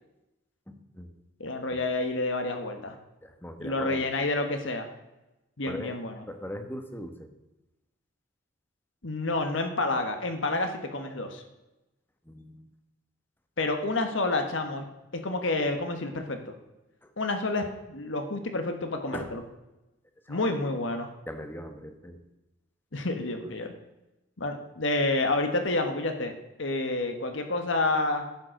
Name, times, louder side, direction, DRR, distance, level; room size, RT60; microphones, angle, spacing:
voice 1, 0.7-1.1 1.7-1.8 3.2-4.1 5.7-5.9 6.3-7.3 12.2-12.7 17.0-17.1 19.1-19.4 20.3-20.5 21.3-22.2, equal, 10° left, 7 dB, 1.2 m, -40 dB
voice 2, 1.4-3.0 3.6-4.9 5.6-6.1 9.0-11.4 13.6-14.9 15.1-16.5 17.2-19.4 20.3-21.1 22.9-23.7 24.4-28.3, left 2 dB, 70° left, 6 dB, 1.4 m, -29 dB
11.0 x 7.6 x 6.4 m, 0.98 s
head